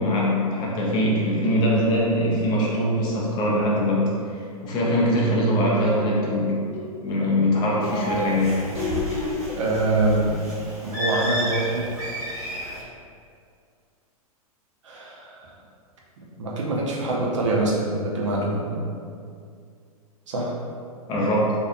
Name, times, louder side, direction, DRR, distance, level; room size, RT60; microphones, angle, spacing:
voice 1, 0.0-6.6 7.0-8.6 21.1-21.5, equal, 25° left, -4 dB, 0.4 m, -22 dB
sound 1, 0.9-3.4 4.9-9.4, left 2 dB, 55° left, 0.8 m, -34 dB
Bird, 7.8-12.8, equal, 80° right, 0.9 m, -32 dB
voice 2, 9.5-10.5 10.8-11.9 14.8-15.5 16.2-18.9 20.3-20.6, right 2 dB, 55° right, -3 dB, 0.5 m, -25 dB
2.6 x 2.3 x 2.4 m, 2.2 s
figure-of-eight pair, 100°, 19 cm